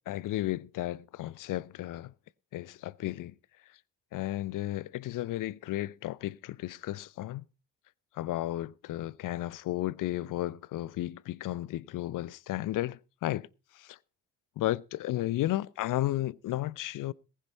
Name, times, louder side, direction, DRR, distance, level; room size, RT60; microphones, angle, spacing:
voice 1, 0.1-2.1 2.5-3.3 4.1-7.4 8.1-13.5 13.8-14.0 14.6-17.1, left 15 dB, 40° left, 0.6 m, -33 dB
19.0 x 10.0 x 4.1 m
figure-of-eight pair, 45°, 48 cm